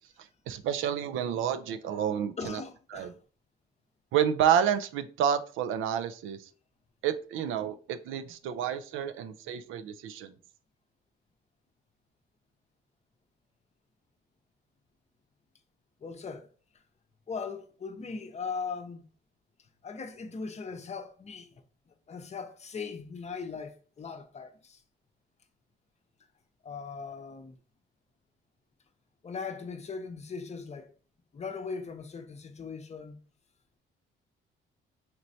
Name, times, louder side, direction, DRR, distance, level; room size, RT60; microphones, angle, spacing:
voice 1, 0.5-2.6 2.9-3.1 4.1-6.4 7.0-10.3, right 9 dB, 85° right, 0.4 m, -29 dB
voice 2, 2.4-3.1 16.0-16.5 17.3-19.0 19.8-24.8 26.6-27.6 29.2-30.9 31.3-33.2, left 5 dB, 35° left, 0.6 m, -39 dB
4.4 x 3.0 x 2.6 m
cardioid pair, 90°, 20 cm